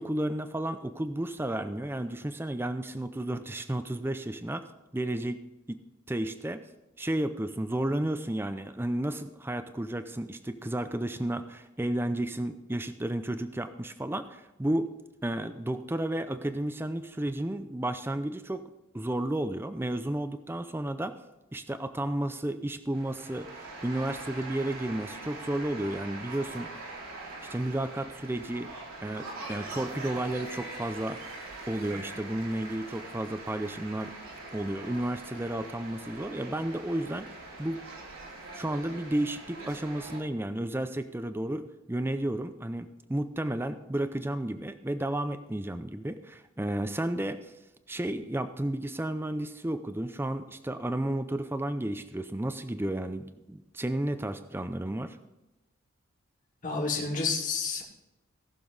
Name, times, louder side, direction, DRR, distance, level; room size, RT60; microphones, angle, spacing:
voice 1, 0.0-4.6 4.9-5.4 5.7-5.8 6.1-6.6 7.0-14.9 15.2-18.7 18.9-21.2 21.5-26.7 27.5-28.7 29.0-31.2 31.7-34.1 34.5-37.3 37.6-37.8 38.6-47.5 47.9-55.2, right 1 dB, 10° right, 10 dB, 0.5 m, -32 dB
sound 1, 22.9-40.2, right 2 dB, 80° right, 2.9 m, -43 dB
voice 2, 56.6-57.8, left 4 dB, 35° left, -2 dB, 2.2 m, -29 dB
18.5 x 6.8 x 4.0 m, 0.98 s
head